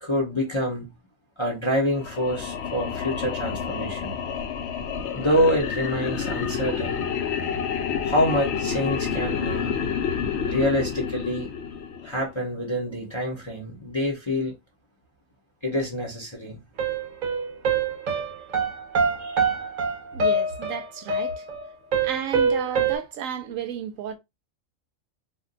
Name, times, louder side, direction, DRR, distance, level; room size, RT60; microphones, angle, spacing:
voice 1, 0.0-0.9 1.4-4.2 5.1-7.0 8.0-9.7 10.4-11.5 12.0-14.5 15.6-16.6 19.2-19.5, left 1 dB, 25° left, 0.6 m, -26 dB
sound 1, 1.9-12.2, left 7 dB, 65° left, 0.7 m, -29 dB
sound 2, 16.8-23.0, right 4 dB, 50° right, 0.6 m, -25 dB
voice 2, 20.1-21.5 22.0-24.2, right 8 dB, 75° right, 0.9 m, -33 dB
2.4 x 2.2 x 3.8 m
omnidirectional pair, 1.5 m